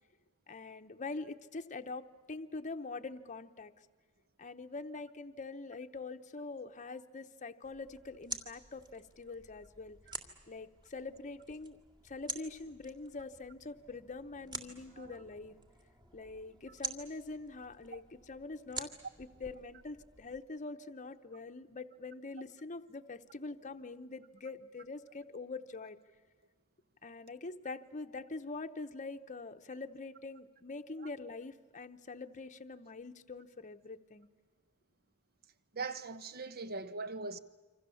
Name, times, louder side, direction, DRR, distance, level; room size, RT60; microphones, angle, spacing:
voice 1, 0.5-3.7 4.4-10.0 10.5-11.8 12.0-15.6 16.1-18.9 19.2-26.0 27.0-34.3, left 3 dB, 35° left, 0.9 m, -44 dB
sound 1, 7.6-20.4, right 3 dB, 20° right, 2.0 m, -48 dB
voice 2, 35.7-37.4, right 3 dB, 45° right, 1.1 m, -40 dB
27.5 x 25.5 x 7.1 m
head